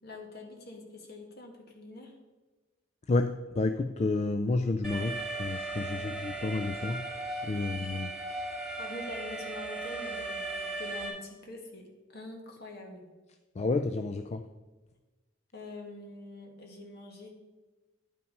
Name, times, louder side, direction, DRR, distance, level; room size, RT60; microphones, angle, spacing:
voice 1, 0.0-2.1 5.8-6.1 7.5-7.7 8.7-13.0 15.5-17.3, left 2 dB, 55° left, 2 dB, 1.8 m, -45 dB
voice 2, 3.1-8.1 13.6-14.4, left 3 dB, 35° left, 9 dB, 0.4 m, -30 dB
Alarm, 4.8-11.1, right 2 dB, 5° right, 2.5 m, -37 dB
10.5 x 5.7 x 5.3 m, 1.2 s
head